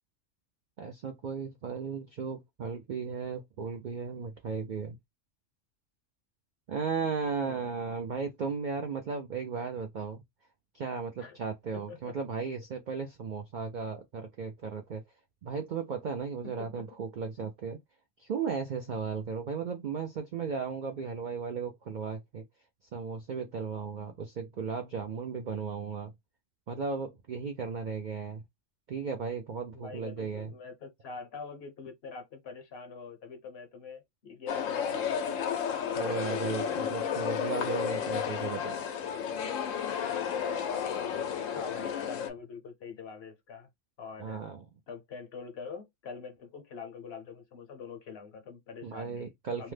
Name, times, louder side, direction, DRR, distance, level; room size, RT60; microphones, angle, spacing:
voice 1, 0.8-5.0 6.7-10.2 10.7-15.0 15.4-17.8 18.2-22.4 22.9-26.1 26.7-28.4 28.9-30.5 36.0-38.8 44.2-44.6 48.8-49.7, right 5 dB, 70° right, 0.4 m, -35 dB
voice 2, 7.4-7.7 11.2-11.4 11.9-12.1 16.6-16.8 29.7-35.2 36.7-37.0 41.4-43.7 44.0-44.5 44.9-49.3 49.6-49.7, left 5 dB, 60° left, 0.8 m, -44 dB
sound 1, 34.5-42.3, left 8 dB, 90° left, 1.0 m, -32 dB
2.8 x 2.0 x 3.2 m
omnidirectional pair, 1.3 m